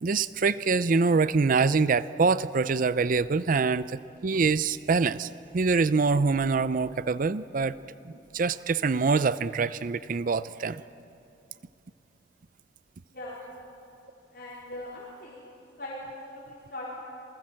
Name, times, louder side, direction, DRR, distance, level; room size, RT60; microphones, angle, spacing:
voice 1, 0.0-7.8 8.1-10.8, right 4 dB, 45° right, 15 dB, 0.5 m, -25 dB
voice 2, 14.3-15.4 15.8-17.0, left 1 dB, 55° left, -6 dB, 4.4 m, -40 dB
28.0 x 20.0 x 7.6 m, 2.9 s
head